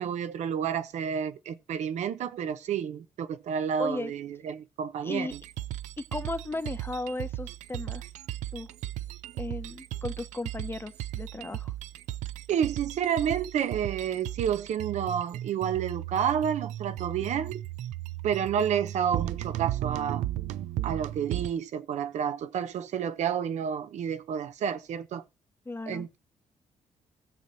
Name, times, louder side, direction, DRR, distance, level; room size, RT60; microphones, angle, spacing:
voice 1, 0.0-5.4 12.5-17.6 18.2-20.3 20.8-25.2 25.9-26.2, right 8 dB, 75° right, 0.8 m, -30 dB
voice 2, 3.8-4.1 5.0-5.3 6.0-8.0 8.5-8.7 9.4-11.7 25.7-26.1, left 2 dB, 20° left, 0.9 m, -35 dB
sound 1, 5.3-21.5, right 14 dB, 90° right, 0.4 m, -36 dB
19.0 x 6.7 x 2.8 m
cardioid pair, 80°, 12 cm